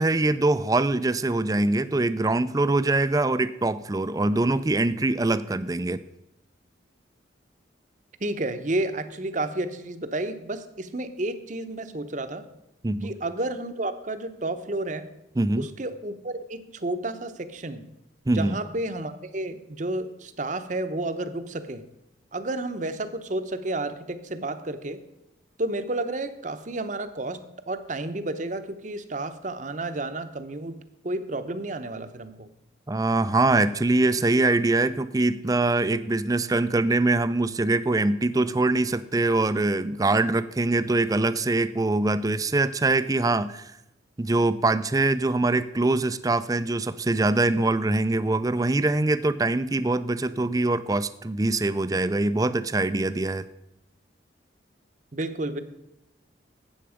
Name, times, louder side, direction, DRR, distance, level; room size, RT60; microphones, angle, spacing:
voice 1, 0.0-6.0 12.8-13.1 15.4-15.7 18.3-18.6 32.9-43.7 44.2-53.4, right 2 dB, 20° right, 14 dB, 0.4 m, -23 dB
voice 2, 8.2-12.4 13.0-15.1 15.6-17.8 18.3-21.8 22.3-25.0 25.6-32.5 55.1-55.6, right 2 dB, 40° right, 10 dB, 0.8 m, -31 dB
12.5 x 8.6 x 5.0 m, 0.87 s
head